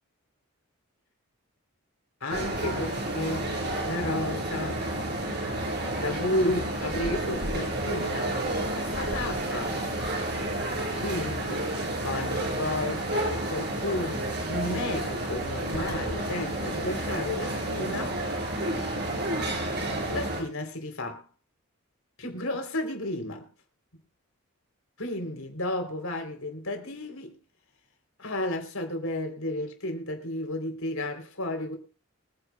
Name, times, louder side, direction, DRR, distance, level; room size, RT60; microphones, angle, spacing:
voice 1, 2.2-3.5 3.8-4.8 6.0-8.4 8.7-9.9 10.5-11.7 12.0-18.2 20.1-21.3 22.2-23.5 25.0-27.4 28.2-31.8, left 1 dB, 80° left, 3.7 m, -32 dB
sound 1, 2.3-20.4, right 1 dB, 50° right, 5.2 m, -30 dB
24.5 x 9.9 x 2.4 m
head